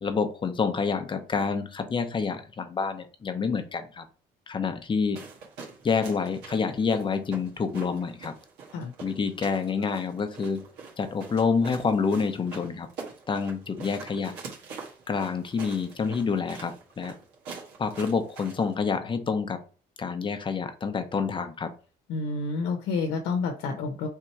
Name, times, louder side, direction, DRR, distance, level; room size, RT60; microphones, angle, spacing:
voice 1, 0.0-4.1 4.5-5.2 5.8-8.3 9.0-10.6 11.0-12.9 13.3-14.3 15.1-17.1 17.8-19.6 20.0-21.7, left 5 dB, 30° left, 7 dB, 0.8 m, -28 dB
sound 1, 5.2-18.8, right 4 dB, 90° right, 1.5 m, -45 dB
voice 2, 22.1-24.1, left 4 dB, 85° left, 4 dB, 0.8 m, -29 dB
3.7 x 2.9 x 4.5 m, 0.38 s
cardioid pair, 110°, 17 cm